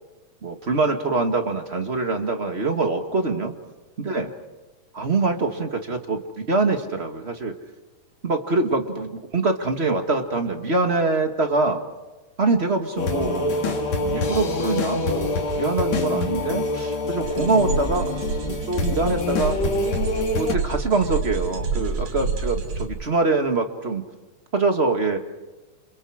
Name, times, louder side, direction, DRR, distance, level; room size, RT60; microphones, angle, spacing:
voice 1, 0.4-3.5 4.0-4.3 4.9-6.2 6.5-7.5 8.2-11.8 12.4-19.6 20.3-24.0 24.5-25.2, right 3 dB, 25° right, 6 dB, 1.5 m, -24 dB
sound 1, 13.0-20.5, left 2 dB, 60° left, 3.6 m, -25 dB
sound 2, 17.2-22.8, right 4 dB, 70° right, 3.9 m, -28 dB
29.0 x 28.5 x 4.9 m, 1.2 s
omnidirectional pair, 3.5 m